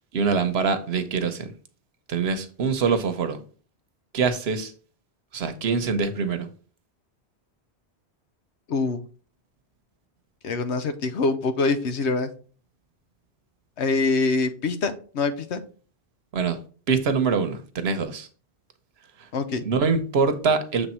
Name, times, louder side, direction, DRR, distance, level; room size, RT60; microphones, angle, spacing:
voice 1, 0.1-1.5 2.1-3.4 4.1-4.7 5.3-6.5 16.3-16.6 16.9-18.3 19.6-20.9, right 5 dB, 70° right, 1.0 m, -24 dB
voice 2, 10.4-12.3 13.8-15.6 19.3-19.6, left 3 dB, 85° left, 1.1 m, -24 dB
7.1 x 3.3 x 4.3 m
omnidirectional pair, 1.1 m